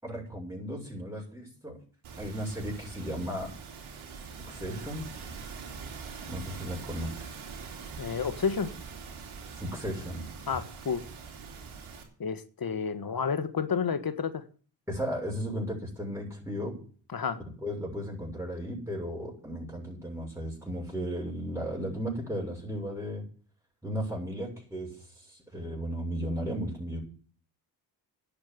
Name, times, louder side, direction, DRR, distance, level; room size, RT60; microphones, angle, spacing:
voice 1, 0.0-1.8 2.2-3.5 4.5-5.1 6.3-7.3 9.5-10.2 14.9-16.7 17.6-23.2 23.8-27.0, equal, 5° right, 6.9 m, -35 dB
sound 1, 2.0-12.0, right 5 dB, 85° right, 2.9 m, -43 dB
voice 2, 8.0-8.7 10.5-11.0 12.2-14.4 17.1-17.4, left 6 dB, 50° left, 1.5 m, -30 dB
10.5 x 7.8 x 8.8 m
cardioid pair, 60°, 47 cm